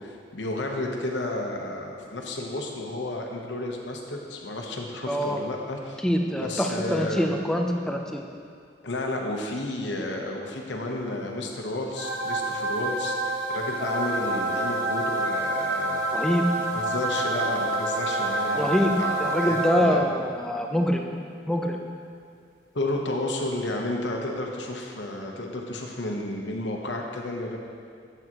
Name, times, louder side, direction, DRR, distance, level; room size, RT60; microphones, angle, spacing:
voice 1, 0.0-6.0 6.3-7.3 8.8-16.0 16.7-20.0 22.7-27.6, left 2 dB, 90° left, 1 dB, 0.9 m, -32 dB
voice 2, 5.1-5.4 6.0-8.3 16.1-16.5 18.5-18.9 19.2-21.1 21.5-21.8, equal, 5° left, 2 dB, 0.5 m, -24 dB
sound 1, 12.0-20.2, right 2 dB, 50° right, 1.4 m, -28 dB
8.4 x 7.9 x 3.0 m, 2.3 s
head